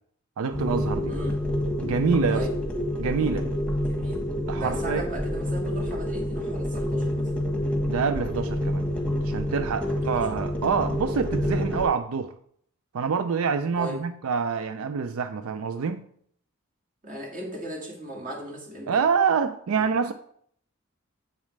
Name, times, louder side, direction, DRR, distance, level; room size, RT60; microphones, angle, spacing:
voice 1, 0.4-1.2 1.8-2.4 3.0-3.5 4.5-5.0 7.9-8.8 9.2-12.3 12.9-16.1 18.9-20.1, right 5 dB, 90° right, 10 dB, 0.4 m, -26 dB
sound 1, 0.5-11.8, equal, 5° left, 1.2 m, -28 dB
voice 2, 1.1-1.4 2.3-2.5 3.8-4.3 4.6-7.3 9.9-10.4 13.8-14.0 17.0-19.0 19.8-19.9, equal, 40° right, 0 dB, 1.9 m, -37 dB
7.5 x 7.2 x 3.2 m, 0.63 s
head